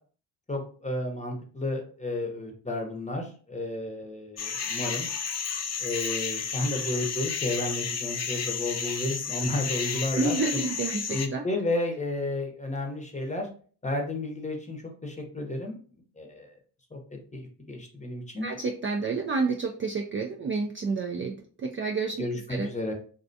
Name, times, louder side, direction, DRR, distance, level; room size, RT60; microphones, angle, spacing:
voice 1, 0.5-5.1 5.8-10.4 11.1-13.5 13.8-15.8 16.2-16.5 16.9-17.0 17.3-18.5 22.2-22.9, left 1 dB, 15° left, 3 dB, 0.8 m, -32 dB
sound 1, 4.4-11.3, left 6 dB, 35° left, 0.5 m, -32 dB
sound 2, 5.2-7.0, left 6 dB, 80° left, 0.9 m, -51 dB
voice 2, 10.2-11.4 18.4-22.7, right 4 dB, 30° right, 2 dB, 0.3 m, -29 dB
2.4 x 2.2 x 2.6 m, 0.42 s
supercardioid pair, 45°, 46 cm